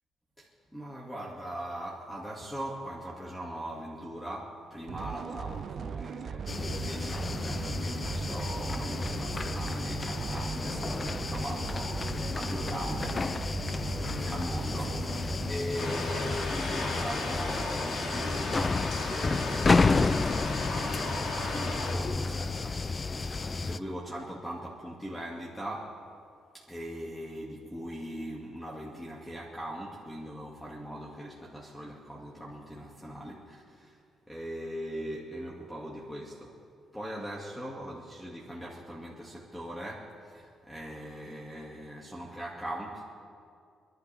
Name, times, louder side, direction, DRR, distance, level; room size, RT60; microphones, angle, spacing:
voice 1, 0.4-13.2 13.5-13.6 14.0-15.0 15.5-26.0 26.5-34.0 34.3-36.6 36.9-43.1, equal, 5° left, -3 dB, 2.2 m, -40 dB
sound 1, 4.9-15.5, right 7 dB, 55° right, 0.4 m, -39 dB
sound 2, 6.5-23.8, left 3 dB, 30° left, 0.4 m, -31 dB
sound 3, 15.8-21.9, left 2 dB, 65° left, 2.8 m, -35 dB
26.5 x 12.0 x 3.5 m, 2.3 s
cardioid pair, 90°, 0 cm